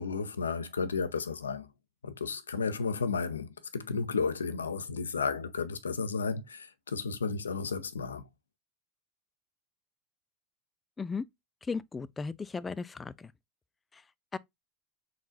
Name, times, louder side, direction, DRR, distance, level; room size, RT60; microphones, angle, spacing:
voice 1, 0.0-1.7 2.0-8.3, left 5 dB, 85° left, 0.4 m, -33 dB
voice 2, 11.7-13.3 14.3-14.4, left 4 dB, 20° left, 0.4 m, -36 dB
3.9 x 3.8 x 2.4 m
hypercardioid pair, 80°, 0 cm